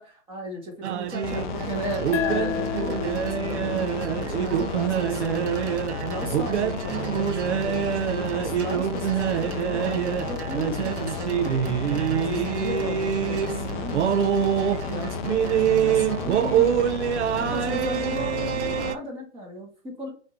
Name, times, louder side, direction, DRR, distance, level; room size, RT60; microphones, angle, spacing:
voice 1, 0.3-5.6 6.0-11.7 12.1-13.9 14.8-16.8 17.4-20.1, equal, 15° right, -2 dB, 1.8 m, -36 dB
sound 1, 0.8-19.0, right 9 dB, 65° right, 0.6 m, -26 dB
sound 2, 1.2-18.9, left 8 dB, 40° left, 0.4 m, -33 dB
sound 3, 2.1-5.3, left 7 dB, 75° left, 0.8 m, -33 dB
5.5 x 2.9 x 3.1 m, 0.43 s
hypercardioid pair, 130°, 37 cm